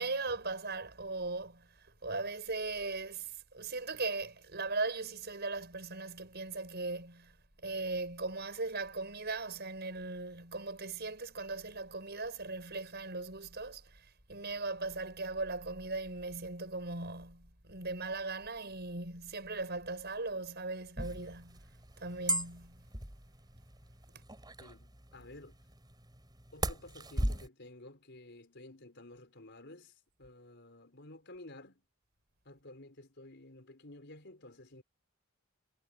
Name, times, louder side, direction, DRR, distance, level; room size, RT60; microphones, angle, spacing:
voice 1, 0.0-7.4 7.6-21.7 22.0-22.8, right 3 dB, 50° right, 6.4 m, -39 dB
sound 1, 21.0-27.5, right 1 dB, 20° right, 5.1 m, -38 dB
voice 2, 24.6-25.6 26.5-31.8 32.4-34.8, left 2 dB, 55° left, 5.1 m, -52 dB
head